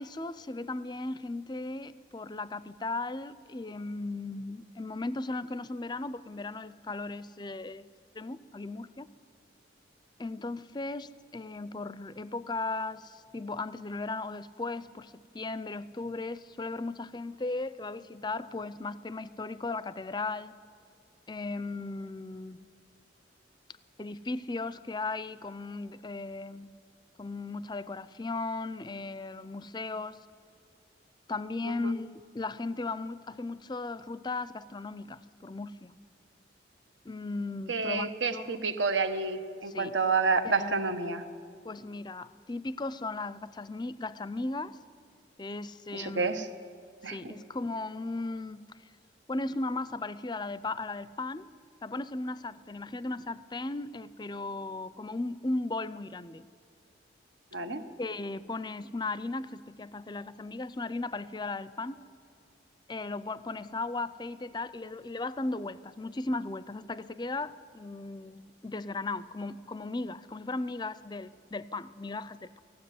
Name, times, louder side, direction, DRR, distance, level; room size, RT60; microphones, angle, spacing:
voice 1, 0.0-7.9 8.1-9.1 10.2-20.6 21.3-22.6 24.0-26.7 27.2-30.2 31.3-35.9 37.0-38.6 39.7-39.9 40.4-40.7 41.6-44.8 45.4-46.4 47.0-48.7 49.3-51.5 51.8-56.4 58.0-62.0 62.9-72.6, left 2 dB, 25° left, 16 dB, 0.5 m, -36 dB
voice 2, 37.7-41.2 45.9-46.5 47.0-47.3 57.5-57.8, right 4 dB, 80° right, 9 dB, 1.3 m, -29 dB
18.5 x 15.0 x 9.3 m, 2.4 s
head